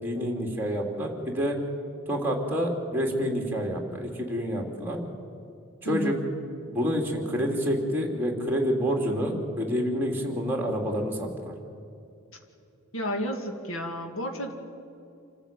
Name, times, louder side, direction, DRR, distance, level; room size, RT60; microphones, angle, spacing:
voice 1, 0.0-1.6 2.1-5.0 5.8-6.1 6.7-11.5, equal, 10° right, 0 dB, 3.1 m, -28 dB
voice 2, 5.9-6.2 12.9-14.5, equal, 70° left, 4 dB, 2.1 m, -31 dB
27.5 x 14.0 x 9.0 m, 2.6 s
head